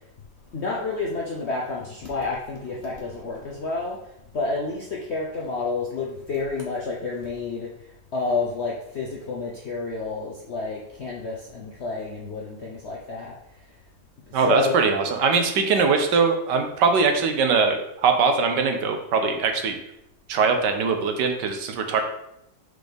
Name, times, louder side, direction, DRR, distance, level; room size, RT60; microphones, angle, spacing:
voice 1, 0.5-4.0 4.3-7.7 8.1-13.4 14.3-14.7, left 3 dB, 60° left, -3 dB, 0.7 m, -29 dB
voice 2, 14.3-19.8 20.3-22.0, right 5 dB, 70° right, 5 dB, 1.3 m, -21 dB
6.0 x 4.9 x 3.4 m, 0.81 s
omnidirectional pair, 2.0 m